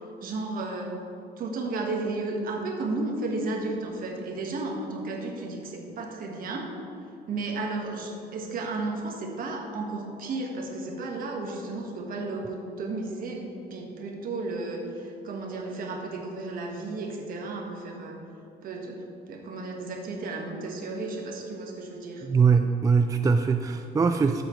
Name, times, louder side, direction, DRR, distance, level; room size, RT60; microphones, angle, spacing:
voice 1, 0.2-0.9 1.4-6.7 7.3-18.2 18.6-22.3, right 3 dB, 55° right, 1 dB, 1.6 m, -33 dB
voice 2, 22.2-24.4, right 5 dB, 20° right, 7 dB, 0.4 m, -22 dB
13.0 x 7.8 x 3.2 m, 2.7 s
cardioid pair, 110°, 17 cm